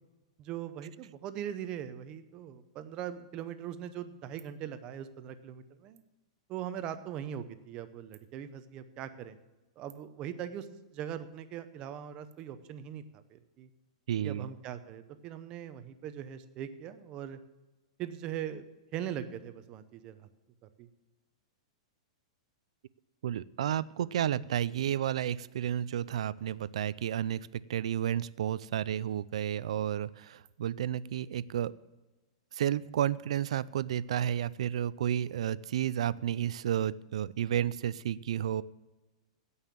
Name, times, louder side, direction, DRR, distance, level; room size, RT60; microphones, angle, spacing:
voice 1, 0.4-6.0 6.5-9.4 9.8-10.7 10.9-13.7 14.2-17.4 18.0-20.3 20.6-20.9, right 10 dB, 25° right, 11 dB, 0.7 m, -41 dB
voice 2, 14.1-14.5 23.2-31.7 32.5-38.6, right 10 dB, 70° right, 19 dB, 0.4 m, -31 dB
16.0 x 5.6 x 7.4 m, 1.1 s
supercardioid pair, 175°, 4 cm